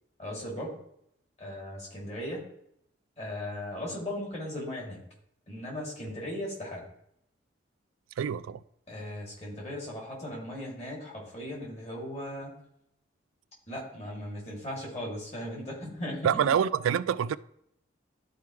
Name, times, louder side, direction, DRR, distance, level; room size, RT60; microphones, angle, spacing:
voice 1, 0.2-0.8 1.4-2.4 3.2-5.0 5.5-6.9 8.9-12.5 13.7-16.6, left 1 dB, 35° left, 2.6 m, -37 dB
voice 2, 8.2-8.6 16.2-17.4, right 8 dB, 85° right, 0.3 m, -26 dB
12.0 x 4.7 x 3.2 m
head